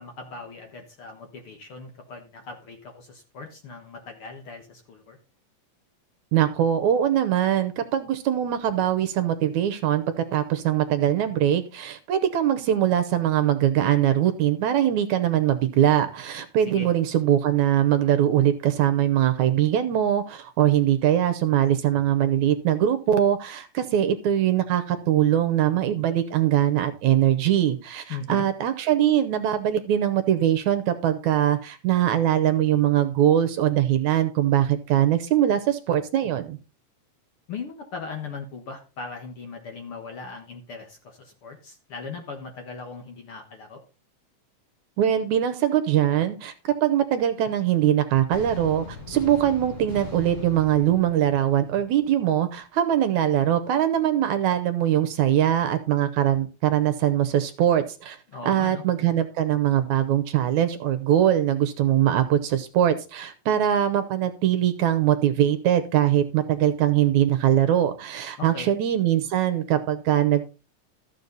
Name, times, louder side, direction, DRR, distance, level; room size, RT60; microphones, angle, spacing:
voice 1, 0.0-5.2 16.7-16.9 28.1-28.5 37.5-43.8 58.3-58.8 68.4-68.7, left 4 dB, 50° left, 4 dB, 1.8 m, -39 dB
voice 2, 6.3-36.6 45.0-58.2 58.4-70.4, right 11 dB, 70° right, 10 dB, 2.0 m, -22 dB
sound 1, 48.3-52.3, left 4 dB, 70° left, 4.3 m, -40 dB
13.5 x 7.3 x 4.0 m, 0.33 s
omnidirectional pair, 3.8 m